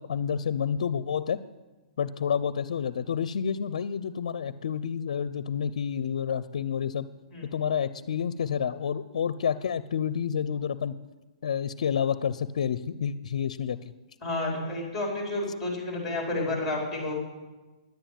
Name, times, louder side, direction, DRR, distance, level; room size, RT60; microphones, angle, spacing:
voice 1, 0.0-1.4 2.0-7.1 7.5-10.9 11.4-13.9, left 7 dB, 70° left, 15 dB, 0.5 m, -29 dB
voice 2, 14.2-17.1, left 2 dB, ahead, -1 dB, 4.3 m, -30 dB
10.5 x 9.0 x 9.2 m, 1.2 s
hypercardioid pair, 160°, 4 cm